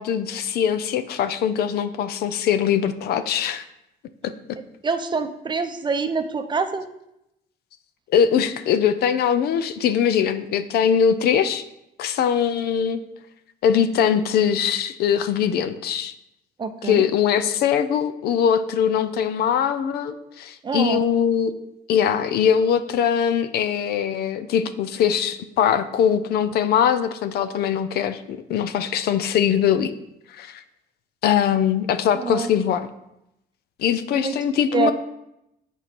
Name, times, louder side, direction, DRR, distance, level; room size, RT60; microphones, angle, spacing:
voice 1, 0.0-3.6 4.2-4.6 8.1-11.6 12.0-13.0 13.6-16.1 16.8-21.5 21.9-29.9 30.3-30.6 31.2-32.9 33.8-34.9, left 8 dB, 70° left, 12 dB, 0.6 m, -21 dB
voice 2, 4.8-6.9 16.6-17.0 20.6-21.0 32.1-32.5 34.1-34.3 34.7-34.9, right 5 dB, 25° right, 8 dB, 0.7 m, -25 dB
8.5 x 4.6 x 5.3 m, 0.84 s
cardioid pair, 110°, 17 cm